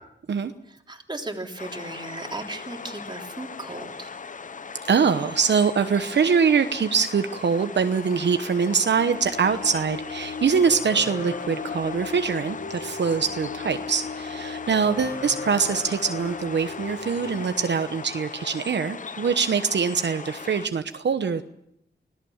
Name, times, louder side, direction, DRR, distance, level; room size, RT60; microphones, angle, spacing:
voice 1, 0.7-4.1, right 2 dB, 25° right, 2 dB, 3.6 m, -36 dB
sound 1, 1.6-20.7, left 5 dB, 45° left, 0.7 m, -39 dB
voice 2, 4.8-21.4, right 6 dB, 70° right, 8 dB, 1.0 m, -23 dB
sound 2, 9.0-18.3, left 4 dB, 70° left, 1.9 m, -37 dB
25.0 x 17.5 x 7.2 m, 0.78 s
wide cardioid pair, 95°, 19 cm